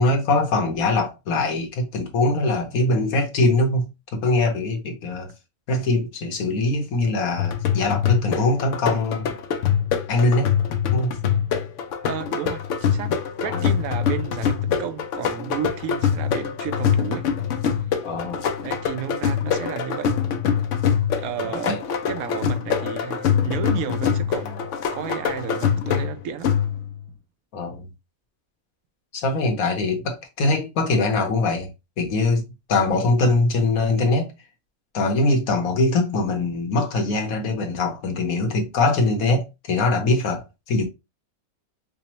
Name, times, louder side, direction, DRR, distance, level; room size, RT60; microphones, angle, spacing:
voice 1, 0.0-5.3 5.7-9.3 10.1-10.5 10.9-11.2 13.4-13.6 18.0-18.4 21.4-21.8 27.5-27.9 29.1-31.7 32.0-34.3 34.9-40.8, left 2 dB, 85° left, 1.4 m, -22 dB
sound 1, 7.4-27.0, left 8 dB, 70° left, 0.9 m, -24 dB
voice 2, 12.0-17.3 18.6-20.1 21.2-21.8 22.1-26.5, right 9 dB, 80° right, 1.0 m, -32 dB
5.0 x 2.1 x 3.0 m
omnidirectional pair, 1.4 m